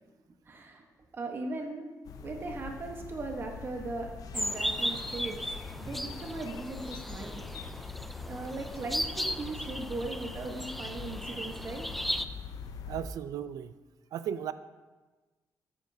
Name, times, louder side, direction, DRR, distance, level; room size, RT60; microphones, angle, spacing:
voice 1, 0.5-0.9 1.1-1.8 2.2-5.4 5.8-7.4 7.7-7.8 8.2-11.9, right 3 dB, 35° right, 3 dB, 1.2 m, -38 dB
sound 1, 2.0-13.1, left 6 dB, 75° left, 0.7 m, -44 dB
sound 2, 4.3-12.2, equal, ahead, 0.3 m, -36 dB
voice 2, 12.9-13.7 14.1-14.5, right 9 dB, 75° right, 13 dB, 0.5 m, -35 dB
13.5 x 9.6 x 2.8 m, 1.2 s
cardioid pair, 140°, 6 cm